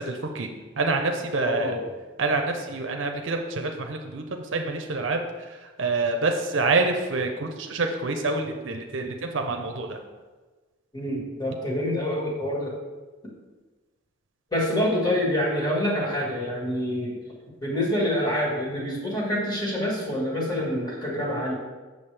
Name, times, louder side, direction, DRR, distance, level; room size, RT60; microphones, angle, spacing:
voice 1, 0.1-0.5 0.8-1.7 2.2-5.2 5.8-10.0, right 3 dB, 70° right, 4 dB, 0.6 m, -27 dB
voice 2, 1.4-1.9 10.9-12.7 14.5-17.2 17.6-21.5, left 1 dB, 20° left, -4 dB, 1.7 m, -26 dB
7.2 x 6.2 x 3.3 m, 1.3 s
head